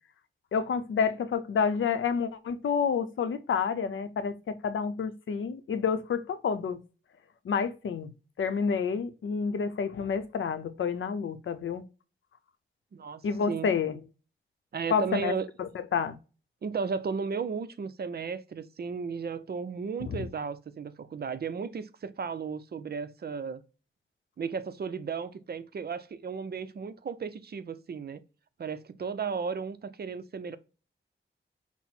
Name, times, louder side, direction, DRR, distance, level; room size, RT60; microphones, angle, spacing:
voice 1, 0.5-6.8 7.4-8.1 8.4-11.8 13.2-14.0 14.9-15.3 15.6-16.2 20.1-20.2, left 6 dB, 80° left, 0.6 m, -29 dB
voice 2, 12.9-13.7 14.7-15.5 16.6-23.6 24.4-28.2 28.6-30.6, right 5 dB, 55° right, 0.5 m, -34 dB
5.9 x 2.0 x 4.3 m
wide cardioid pair, 90°, 20 cm